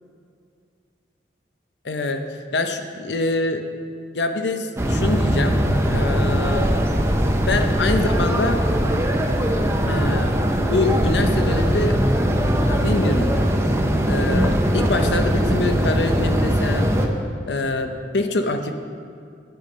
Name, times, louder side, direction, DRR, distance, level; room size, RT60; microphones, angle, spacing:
voice 1, 1.8-2.2 2.5-3.6 4.1-5.6 5.9-6.7 7.5-8.6 9.9-10.4 10.7-12.0 12.7-13.3 14.1-17.0 17.5-18.7, left 2 dB, 70° left, 7 dB, 0.7 m, -24 dB
sound 1, 4.8-17.1, equal, 15° right, 0.7 m, -20 dB
9.5 x 8.4 x 5.3 m, 2.4 s
head